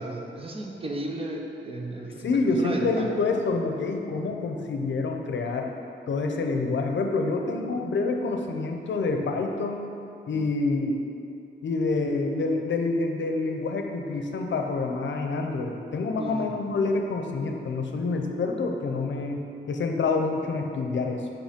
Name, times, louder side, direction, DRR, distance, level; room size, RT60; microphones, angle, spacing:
voice 1, 0.0-2.3 2.5-3.1 16.2-16.5, right 1 dB, 30° right, 0 dB, 0.6 m, -34 dB
voice 2, 2.2-5.7 6.1-9.8 10.3-11.0 11.6-19.4 19.7-21.3, left 3 dB, 75° left, 3 dB, 0.6 m, -27 dB
5.6 x 5.3 x 5.1 m, 2.6 s
wide cardioid pair, 175°, 19 cm